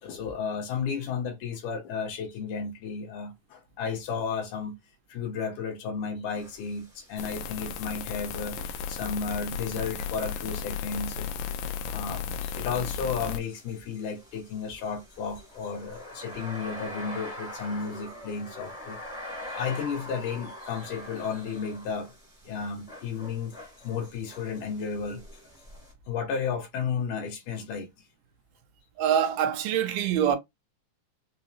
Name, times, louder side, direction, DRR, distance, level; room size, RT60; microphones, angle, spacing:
voice 1, 0.0-4.8 5.1-11.3 11.9-19.0 19.5-22.1 22.5-25.2 26.1-27.9, left 6 dB, 75° left, 2.2 m, -33 dB
sound 1, 6.3-25.9, left 1 dB, 5° right, 0.7 m, -45 dB
sound 2, 7.2-13.4, left 6 dB, 90° left, 2.3 m, -34 dB
voice 2, 29.0-30.4, right 9 dB, 85° right, 2.3 m, -24 dB
5.8 x 2.0 x 2.6 m
omnidirectional pair, 4.0 m